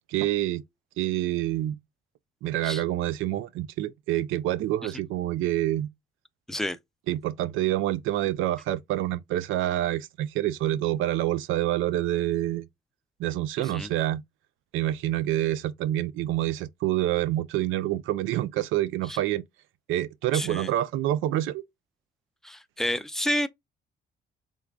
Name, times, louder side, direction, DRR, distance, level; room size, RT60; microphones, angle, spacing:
voice 1, 0.1-0.6 1.0-1.8 2.4-5.9 7.1-12.7 13.2-14.2 14.7-19.4 19.9-21.6, right 14 dB, 90° right, 0.4 m, -27 dB
voice 2, 20.3-20.7 22.4-23.5, equal, ahead, 0.4 m, -29 dB
3.6 x 3.1 x 2.3 m
cardioid pair, 90°, 20 cm